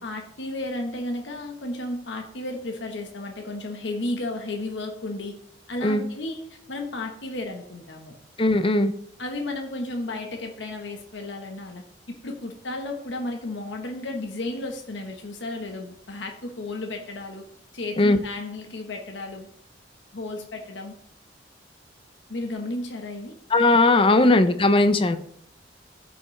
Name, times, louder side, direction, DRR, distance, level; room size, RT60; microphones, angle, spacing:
voice 1, 0.0-5.4 5.7-8.1 9.2-17.5 17.7-19.5 20.1-21.0 22.3-23.4 24.1-24.3, left 2 dB, 70° left, 3 dB, 1.2 m, -33 dB
voice 2, 8.4-8.9 18.0-18.2 23.5-25.2, left 2 dB, 30° left, 10 dB, 0.6 m, -18 dB
14.0 x 5.5 x 3.2 m, 0.66 s
head